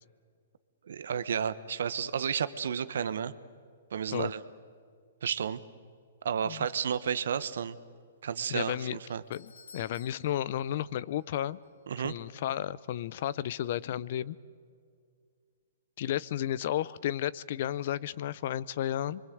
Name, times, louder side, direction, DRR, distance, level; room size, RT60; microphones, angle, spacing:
voice 1, 0.9-3.3 3.9-4.4 5.2-5.6 6.2-7.8 8.2-9.2 11.9-12.1, right 7 dB, 75° right, 14 dB, 1.0 m, -32 dB
voice 2, 8.5-9.0 9.3-11.6 12.0-14.4 16.0-19.2, left 11 dB, 55° left, 20 dB, 0.6 m, -33 dB
Doorbell, 9.1-11.4 11.6-11.7 12.5-12.6, left 5 dB, 90° left, 1.8 m, -56 dB
26.5 x 23.0 x 7.9 m, 2.1 s
hypercardioid pair, 140°, 0 cm